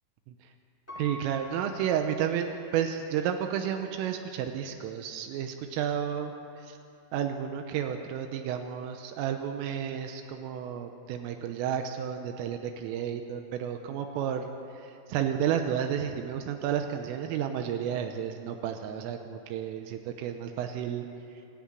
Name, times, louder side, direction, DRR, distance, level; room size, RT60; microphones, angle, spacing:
Piano, 0.9-2.8 3.4-3.5, equal, 5° left, 3.9 m, -45 dB
voice 1, 1.0-6.3 6.6-6.8 7.1-21.1, right 9 dB, 80° right, 5 dB, 3.5 m, -32 dB
26.5 x 11.5 x 9.2 m, 2.6 s
omnidirectional pair, 5.9 m